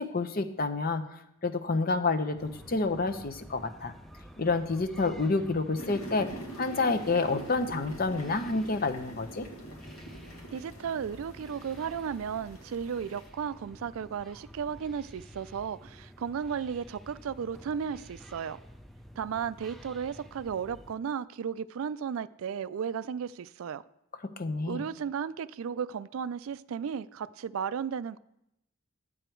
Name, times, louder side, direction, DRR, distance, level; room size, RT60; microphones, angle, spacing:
voice 1, 0.0-3.9 4.4-6.3 6.6-9.5 24.4-24.8, left 3 dB, 45° left, 0.7 m, -29 dB
sound 1, 2.4-21.0, equal, ahead, 0.4 m, -50 dB
sound 2, 5.8-13.3, right 1 dB, 80° left, 1.8 m, -44 dB
voice 2, 10.5-18.6 19.2-23.8 24.7-28.2, right 7 dB, 75° right, 0.3 m, -34 dB
11.0 x 7.8 x 4.5 m
head